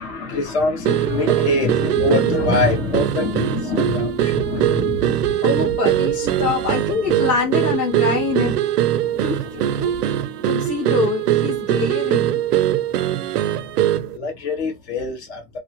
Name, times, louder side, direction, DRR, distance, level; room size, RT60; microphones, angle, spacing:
voice 1, 0.0-5.6 9.1-9.2 9.8-10.0 14.1-15.4, left 3 dB, 45° left, 1.1 m, -24 dB
sound 1, 0.8-14.2, right 12 dB, 80° right, 0.5 m, -21 dB
voice 2, 5.4-8.5 9.2-10.0 10.5-12.4, left 4 dB, 20° left, 0.7 m, -24 dB
2.7 x 2.0 x 2.8 m
supercardioid pair, 175°, 46 cm